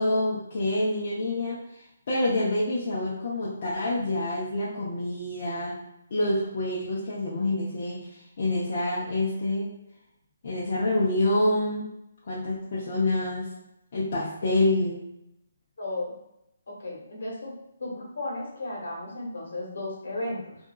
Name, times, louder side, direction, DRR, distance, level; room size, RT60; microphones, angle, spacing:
voice 1, 0.0-5.8 6.1-8.1 8.4-9.7 10.4-11.9 12.3-13.5 13.9-15.0, left 1 dB, 50° left, -7 dB, 0.7 m, -27 dB
voice 2, 15.8-16.1 16.7-17.5 17.8-20.6, left 2 dB, 70° left, -4 dB, 1.2 m, -34 dB
2.7 x 2.4 x 2.3 m, 0.83 s
hypercardioid pair, 155°, 0 cm